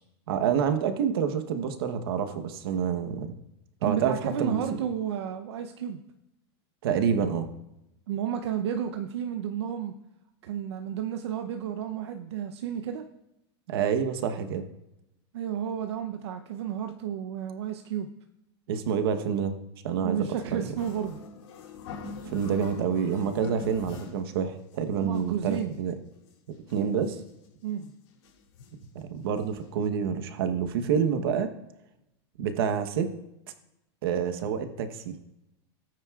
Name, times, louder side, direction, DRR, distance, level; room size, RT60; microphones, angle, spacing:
voice 1, 0.3-3.3 3.8-4.8 6.8-7.5 13.7-14.7 18.7-19.6 19.8-20.7 22.3-26.0 26.7-27.2 28.9-31.5 32.4-33.1 34.0-35.1, right 7 dB, 60° right, 8 dB, 1.1 m, -28 dB
voice 2, 3.8-6.0 8.1-9.9 10.4-13.0 15.3-18.1 20.0-21.2 25.0-25.7 27.6-27.9, right 9 dB, 75° right, 6 dB, 0.7 m, -32 dB
sound 1, 20.7-24.3 24.7-24.8 25.0-25.8 26.3-26.4 26.6-27.3 27.8-27.9 28.2-28.9 29.4-29.5 29.7-29.8, left 3 dB, 75° left, 2.9 m, -43 dB
18.0 x 9.2 x 2.4 m, 0.87 s
supercardioid pair, 180°, 14 cm